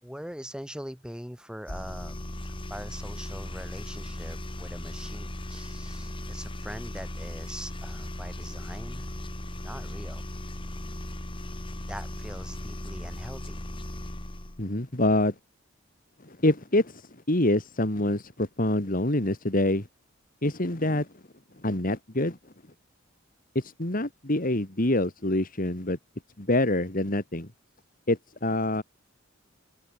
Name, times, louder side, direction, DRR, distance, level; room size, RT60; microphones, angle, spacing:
voice 1, 0.0-2.2 2.4-9.1 9.6-10.2 11.9-13.6, equal, 5° right, 4.6 m, -42 dB
sound 1, 1.7-14.6, left 1 dB, 25° left, 2.0 m, -37 dB
voice 2, 14.6-15.3 16.2-17.0 17.3-19.9 20.4-21.1 21.6-22.4 23.5-26.0 26.4-27.5 28.1-28.8, left 1 dB, 45° left, 2.8 m, -26 dB
head